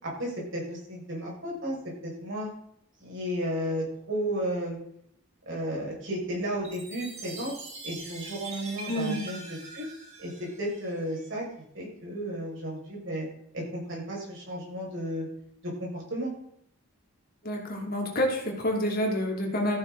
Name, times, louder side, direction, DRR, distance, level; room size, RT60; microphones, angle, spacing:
voice 1, 0.0-1.8 2.0-2.5 3.0-4.8 5.5-7.5 7.8-9.9 10.2-11.4 11.7-13.3 13.5-15.3 15.6-16.3, equal, 60° right, -3 dB, 5.8 m, -33 dB
Chime, 6.6-11.2, right 3 dB, 35° right, 3.0 m, -43 dB
voice 2, 8.9-9.2 17.4-19.8, left 1 dB, 45° left, 0 dB, 2.9 m, -28 dB
14.0 x 9.8 x 4.0 m, 0.70 s
head